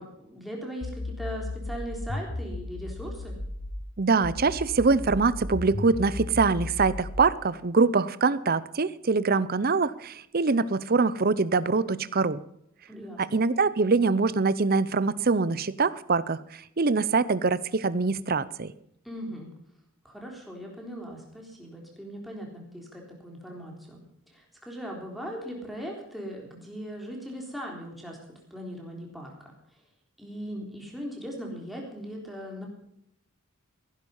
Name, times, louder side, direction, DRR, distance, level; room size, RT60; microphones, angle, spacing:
voice 1, 0.0-3.4 12.9-13.4 19.0-19.5 20.0-29.5 30.2-32.7, equal, ahead, -1 dB, 3.7 m, -39 dB
sound 1, 0.8-3.8 4.2-7.2, left 2 dB, 45° left, 1.0 m, -35 dB
voice 2, 4.0-12.4 13.2-18.7, right 4 dB, 45° right, 17 dB, 0.6 m, -24 dB
16.0 x 11.0 x 5.5 m, 0.74 s
head